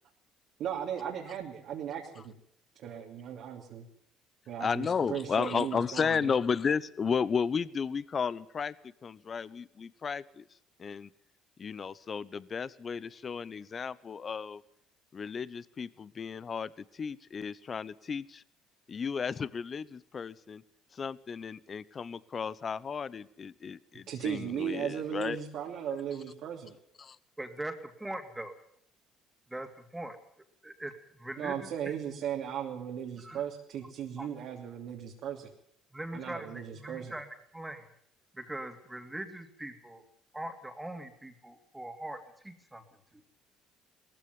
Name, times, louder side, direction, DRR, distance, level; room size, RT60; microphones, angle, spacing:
voice 1, 0.6-2.4 2.8-3.8 4.5-6.4 24.1-26.8 31.4-35.5 36.1-37.1, right 9 dB, 65° right, 0 dB, 2.9 m, -37 dB
voice 2, 4.6-10.4 10.8-11.1 11.6-14.6 15.1-18.4 18.9-20.6 20.9-25.4 27.0-27.2, left 6 dB, 40° left, 19 dB, 1.0 m, -33 dB
voice 3, 27.4-28.5 29.5-30.2 30.6-31.9 33.2-33.4 34.2-34.3 35.9-37.3 37.5-37.9 38.3-40.0 40.3-42.8 43.1-43.2, right 1 dB, 10° right, 6 dB, 2.9 m, -41 dB
19.0 x 15.0 x 9.6 m, 0.69 s
supercardioid pair, 70°, 0 cm